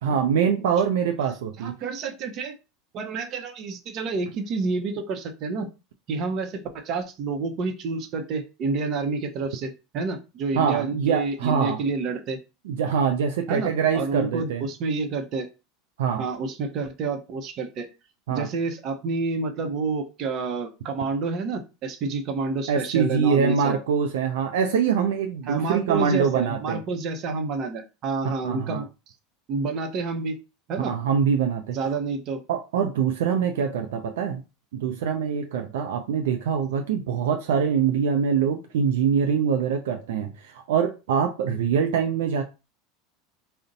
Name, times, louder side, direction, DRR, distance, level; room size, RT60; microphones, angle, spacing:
voice 1, 0.0-1.8 10.5-11.8 12.7-14.6 16.0-16.2 18.3-18.5 22.7-26.8 28.4-28.8 30.8-31.8 32.5-34.4 34.7-42.4, right 7 dB, 80° right, 0.4 m, -24 dB
voice 2, 1.6-2.5 2.9-5.7 6.1-12.4 13.5-15.5 16.2-17.9 18.3-23.8 25.5-28.9 29.5-30.3 30.7-30.9 31.7-32.4, right 4 dB, 50° right, 0.7 m, -29 dB
2.5 x 2.1 x 3.8 m
hypercardioid pair, 100°, 0 cm